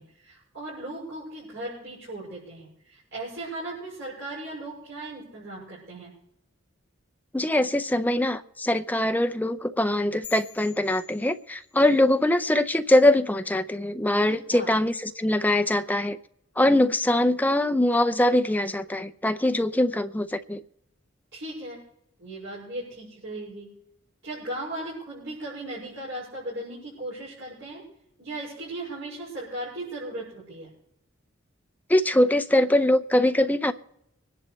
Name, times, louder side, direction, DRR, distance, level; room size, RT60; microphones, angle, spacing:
voice 1, 0.0-6.1 14.3-14.7 21.3-21.8 22.2-23.7 24.2-27.8 28.2-30.7, right 1 dB, 65° right, 6.9 m, -37 dB
voice 2, 7.3-16.2 16.6-20.6 31.9-33.7, left 1 dB, 10° left, 0.6 m, -22 dB
sound 1, 10.2-12.0, left 10 dB, 40° left, 3.1 m, -46 dB
25.5 x 10.5 x 3.2 m
head